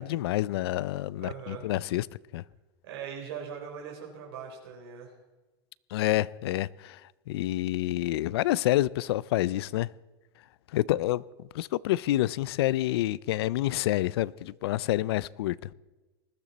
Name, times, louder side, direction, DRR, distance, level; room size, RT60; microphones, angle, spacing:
voice 1, 0.0-2.1 2.3-2.4 5.9-7.0 7.3-9.9 10.7-11.2 11.5-15.6, left 15 dB, 85° left, 0.4 m, -28 dB
voice 2, 1.2-1.7 2.8-5.1, right 7 dB, 85° right, 3.8 m, -40 dB
20.0 x 13.5 x 4.1 m
supercardioid pair, 180°, 13 cm